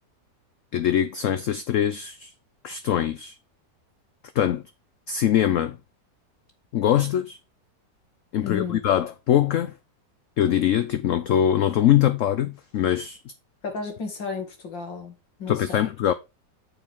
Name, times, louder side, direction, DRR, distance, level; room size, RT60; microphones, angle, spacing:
voice 1, 0.7-2.3 2.6-3.3 4.3-4.6 5.1-5.8 6.7-7.4 8.3-9.7 10.4-13.2 15.5-16.1, left 10 dB, 65° left, 0.8 m, -22 dB
voice 2, 8.4-8.8 13.6-15.1 15.4-15.9, left 5 dB, 90° left, 3.1 m, -33 dB
8.7 x 7.5 x 3.6 m
omnidirectional pair, 1.9 m